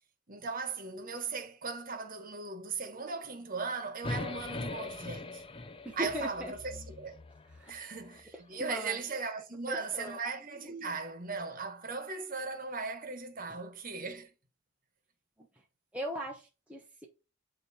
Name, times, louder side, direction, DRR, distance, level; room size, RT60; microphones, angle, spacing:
voice 1, 0.3-5.4 6.0-7.2 7.7-14.3, right 4 dB, 45° right, 1.4 m, -38 dB
sound 1, 4.0-8.3, left 2 dB, 30° left, 0.6 m, -41 dB
voice 2, 5.8-6.6 7.5-7.9 8.3-9.0 9.7-11.0 13.5-13.6 15.4-15.5 15.9-17.1, equal, 5° right, 1.0 m, -40 dB
8.5 x 3.1 x 4.3 m
head